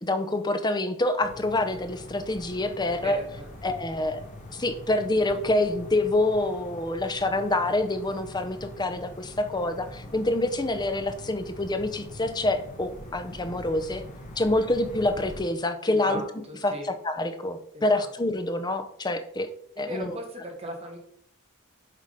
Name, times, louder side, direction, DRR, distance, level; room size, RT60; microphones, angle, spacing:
voice 1, 0.0-3.2 3.6-4.2 4.5-14.0 14.4-16.2 16.6-16.7 17.0-19.5 19.8-20.1, left 2 dB, 20° left, 8 dB, 0.6 m, -26 dB
sound 1, 1.2-15.4, left 1 dB, 35° left, 1.2 m, -43 dB
voice 2, 3.0-3.5 15.9-16.9 17.7-18.1 19.7-21.0, equal, 25° right, 1 dB, 1.4 m, -38 dB
7.5 x 3.6 x 5.1 m, 0.66 s
head